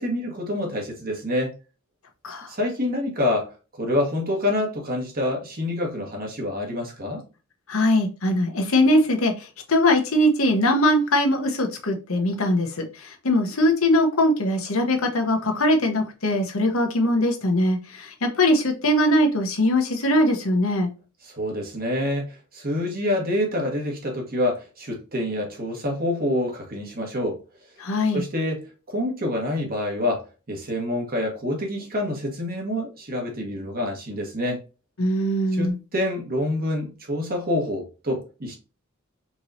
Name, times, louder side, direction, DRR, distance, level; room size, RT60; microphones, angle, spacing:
voice 1, 0.0-1.5 2.5-3.5 3.8-7.2 21.2-27.4 28.1-34.6 35.5-38.6, left 1 dB, 45° right, 1.4 m, -27 dB
voice 2, 7.7-9.3 9.7-20.9 27.8-28.2 35.0-35.7, left 1 dB, 70° left, 1.0 m, -21 dB
4.6 x 3.0 x 2.7 m
head